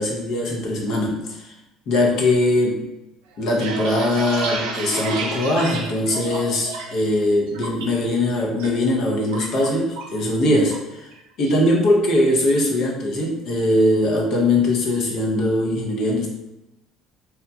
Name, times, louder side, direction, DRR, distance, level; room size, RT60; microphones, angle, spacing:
voice 1, 0.0-1.5 1.9-2.8 3.4-11.1 11.4-16.3, left 1 dB, 60° left, -1 dB, 0.7 m, -21 dB
sound 1, 3.3-7.0 7.3-7.9 8.3-8.7 8.9-10.2 10.5-10.8 11.1-11.6, right 3 dB, 85° right, 0.4 m, -30 dB
2.9 x 2.2 x 2.3 m, 0.95 s
supercardioid pair, 75°, 0 cm